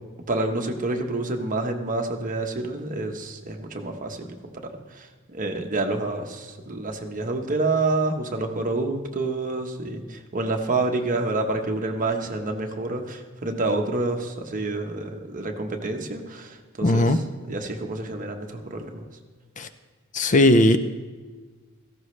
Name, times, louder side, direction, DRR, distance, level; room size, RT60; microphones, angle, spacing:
voice 1, 0.3-17.2 17.5-19.0, right 2 dB, 40° right, 3 dB, 1.2 m, -28 dB
voice 2, 16.8-17.2 19.6-19.7 20.1-20.8, left 1 dB, 35° left, 10 dB, 0.5 m, -17 dB
17.0 x 14.5 x 3.3 m, 1.4 s
head